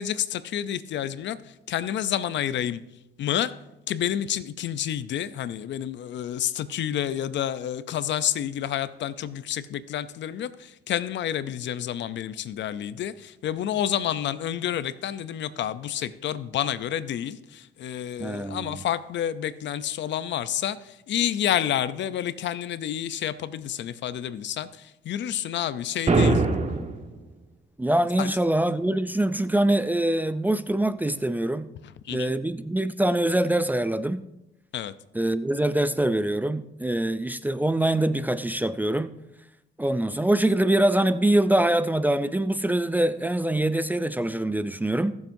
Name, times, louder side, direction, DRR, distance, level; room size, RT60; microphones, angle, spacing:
voice 1, 0.0-1.4 1.7-2.8 3.2-3.5 3.9-26.4 28.2-28.3 32.1-32.3 34.7-34.9, left 10 dB, 65° left, 0.6 m, -29 dB
voice 2, 18.2-18.8 27.8-31.7 32.1-34.2 35.1-39.1 39.8-45.1, right 1 dB, 10° right, 0.4 m, -24 dB
sound 1, 26.1-27.1, right 3 dB, 35° right, 1.3 m, -21 dB
21.0 x 7.2 x 2.7 m
cardioid pair, 90°, 20 cm